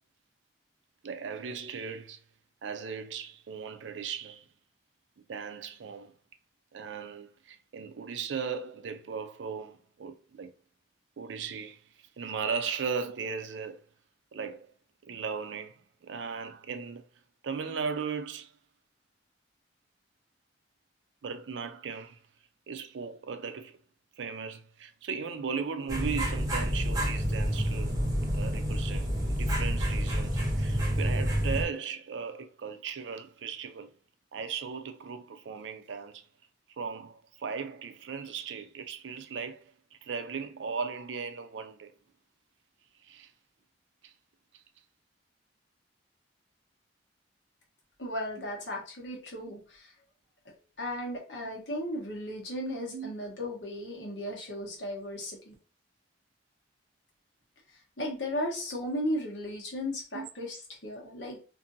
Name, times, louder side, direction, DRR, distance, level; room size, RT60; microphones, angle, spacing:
voice 1, 1.0-2.2 2.6-4.5 5.3-6.1 6.7-10.5 11.2-11.8 12.2-13.8 14.3-14.7 15.0-17.0 17.4-18.5 21.2-22.2 22.7-23.8 24.2-27.9 28.3-33.9 34.3-36.2 36.8-41.9 43.0-43.3 44.0-44.1 48.4-48.5 52.9-53.1 60.1-60.3, right 6 dB, 75° right, 0.4 m, -37 dB
sound 1, 25.9-31.6, equal, 20° right, 0.7 m, -28 dB
voice 2, 48.0-49.9 50.4-55.5 58.0-61.4, left 1 dB, 70° left, 1.1 m, -36 dB
2.6 x 2.6 x 2.6 m
head